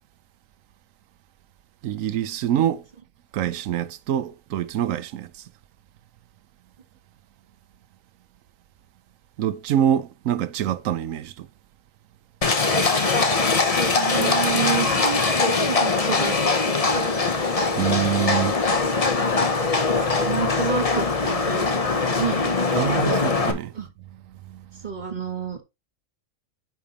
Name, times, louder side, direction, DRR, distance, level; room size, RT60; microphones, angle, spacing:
voice 1, 1.8-2.8 3.3-5.4 9.4-11.5 17.8-18.6 22.7-23.7 24.5-24.8, right 10 dB, 85° right, 1.1 m, -25 dB
Livestock farm animals working animals, 12.4-23.5, left 3 dB, 30° left, 0.9 m, -22 dB
voice 2, 14.0-16.4 16.6-17.5 20.2-22.5 23.7-23.9 24.8-25.6, right 7 dB, 35° right, 1.5 m, -30 dB
8.6 x 5.9 x 2.9 m
omnidirectional pair, 1.3 m